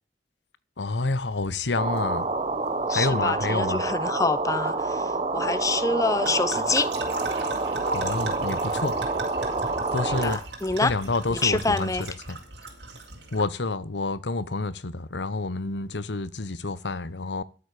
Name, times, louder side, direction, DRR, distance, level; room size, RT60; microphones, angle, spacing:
voice 1, 0.8-2.3 2.9-3.8 7.9-9.0 9.9-10.4 10.8-12.4 13.3-17.4, left 3 dB, 90° left, 1.0 m, -28 dB
sound 1, 1.1-13.4, right 3 dB, 85° right, 5.1 m, -39 dB
sound 2, 1.8-10.4, right 3 dB, 35° right, 1.6 m, -28 dB
voice 2, 2.9-6.9 10.0-10.9 11.3-12.0, left 3 dB, 20° left, 0.7 m, -26 dB
13.0 x 8.0 x 8.2 m
head